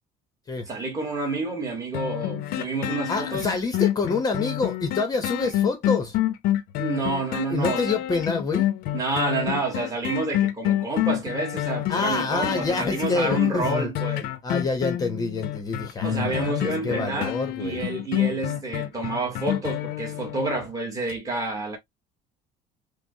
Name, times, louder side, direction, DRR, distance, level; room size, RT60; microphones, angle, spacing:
voice 1, 0.7-3.5 6.8-8.0 8.9-14.3 16.0-21.8, right 3 dB, 20° right, 1.1 m, -29 dB
sound 1, 1.9-20.6 21.1-21.2, left 13 dB, 60° left, 0.6 m, -27 dB
voice 2, 3.1-6.2 7.5-8.7 11.9-13.9 14.4-17.8, left 4 dB, 20° left, 0.7 m, -27 dB
6.0 x 2.0 x 2.7 m
cardioid pair, 175°, 17 cm